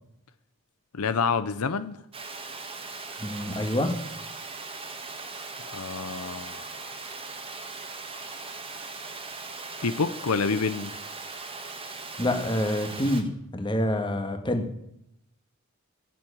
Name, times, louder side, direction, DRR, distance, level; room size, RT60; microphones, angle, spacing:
voice 1, 0.9-2.0 5.6-6.7 9.8-11.0, left 5 dB, 80° left, 13 dB, 0.7 m, -28 dB
Water, 2.1-13.2, right 3 dB, 25° right, 1.7 m, -39 dB
voice 2, 3.2-3.9 12.2-14.7, left 1 dB, 20° left, 5 dB, 1.6 m, -27 dB
15.0 x 7.7 x 8.7 m, 0.79 s
head